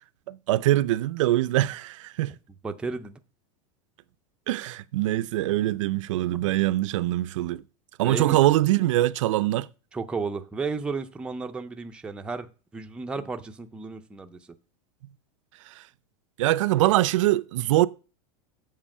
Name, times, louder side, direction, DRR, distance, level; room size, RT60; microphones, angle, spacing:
voice 1, 0.3-2.3 4.5-7.6 8.0-9.7 15.7-15.8 16.4-17.9, right 15 dB, 75° right, 0.5 m, -23 dB
voice 2, 2.6-3.2 8.0-8.4 9.9-14.5, right 4 dB, 5° right, 0.5 m, -33 dB
7.5 x 5.0 x 7.2 m
supercardioid pair, 160°, 16 cm